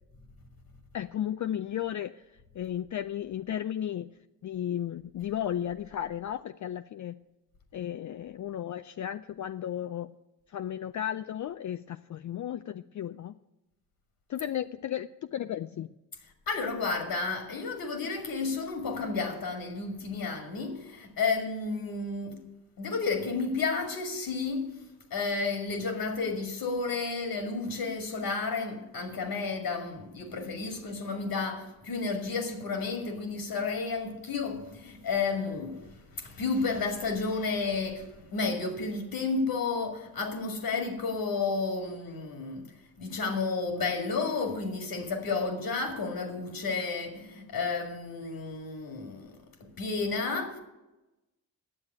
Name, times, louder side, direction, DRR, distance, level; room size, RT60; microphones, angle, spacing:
voice 1, 0.9-2.2 2.5-4.1 4.4-7.1 7.7-10.1 10.5-13.3 14.3-15.9, left 10 dB, 50° left, 0.4 m, -34 dB
voice 2, 16.5-22.4 22.8-24.8 25.1-42.7 43.0-50.6, left 4 dB, 75° left, 2.1 m, -32 dB
9.8 x 7.3 x 9.2 m
cardioid pair, 60°, 38 cm